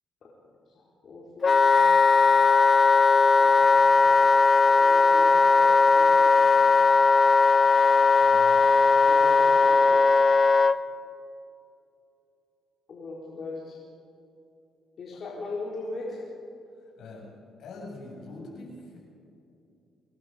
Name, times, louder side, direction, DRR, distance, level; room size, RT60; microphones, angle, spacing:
voice 1, 0.7-1.7 3.3-4.3 4.7-6.7 7.2-7.3 9.0-10.0 12.9-13.8 15.0-16.2, left 3 dB, 55° left, -5 dB, 4.6 m, -40 dB
Wind instrument woodwind instrument, 1.4-10.8, left 4 dB, 35° left, 0.7 m, -18 dB
voice 2, 8.2-8.7 16.8-17.3 17.6-19.0, left 2 dB, 75° left, -1 dB, 7.3 m, -43 dB
26.5 x 20.5 x 5.3 m, 2.7 s
cardioid pair, 90°, 0 cm